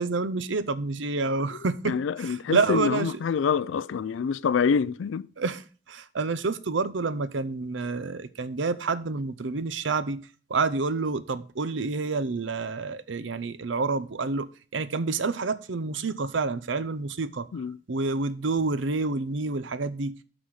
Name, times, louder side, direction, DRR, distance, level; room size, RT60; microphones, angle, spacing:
voice 1, 0.0-3.1 5.4-10.2 10.5-14.5 14.7-17.5 17.9-20.1, right 3 dB, 65° right, 0.6 m, -28 dB
voice 2, 1.8-5.3 17.5-17.8, left 6 dB, 70° left, 0.3 m, -26 dB
12.0 x 4.1 x 4.8 m
head